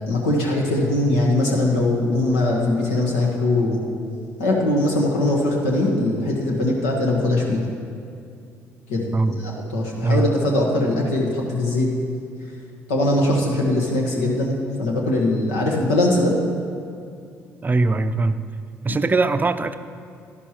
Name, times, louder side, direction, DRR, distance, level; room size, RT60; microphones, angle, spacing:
voice 1, 0.1-3.8 4.4-7.7 8.9-9.0 9.3-11.9 12.9-16.4, left 1 dB, 80° left, -2 dB, 1.5 m, -21 dB
voice 2, 17.6-18.4 18.8-19.8, right 3 dB, 25° right, 11 dB, 0.5 m, -21 dB
12.0 x 11.5 x 3.1 m, 2.4 s
hypercardioid pair, 50°, 7 cm